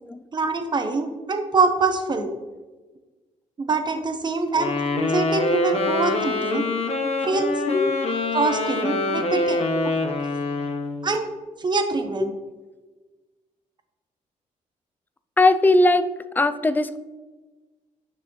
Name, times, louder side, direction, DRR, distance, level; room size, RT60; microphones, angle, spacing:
voice 1, 0.3-2.3 3.6-6.7 7.3-7.5 8.3-10.0 11.0-11.3 11.6-12.3, right 3 dB, 35° right, 6 dB, 1.0 m, -24 dB
Wind instrument woodwind instrument, 4.5-11.0, left 2 dB, 50° left, 1.0 m, -25 dB
voice 2, 15.4-16.0 16.4-17.0, left 2 dB, 15° left, 11 dB, 0.4 m, -18 dB
9.5 x 6.1 x 3.1 m, 1.2 s
cardioid pair, 105°, 14 cm